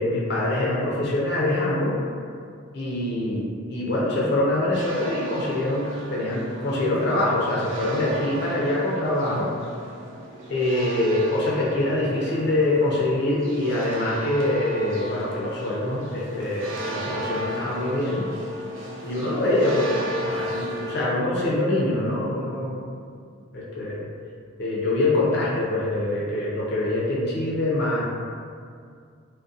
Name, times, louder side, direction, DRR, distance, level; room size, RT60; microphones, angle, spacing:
voice 1, 0.0-2.0 2.7-9.5 10.5-18.3 19.0-22.9 23.5-24.0 24.6-28.0, left 1 dB, 50° left, -5 dB, 0.4 m, -24 dB
sound 1, 4.7-21.0, right 1 dB, 65° right, 0.4 m, -35 dB
2.6 x 2.1 x 2.4 m, 2.2 s
head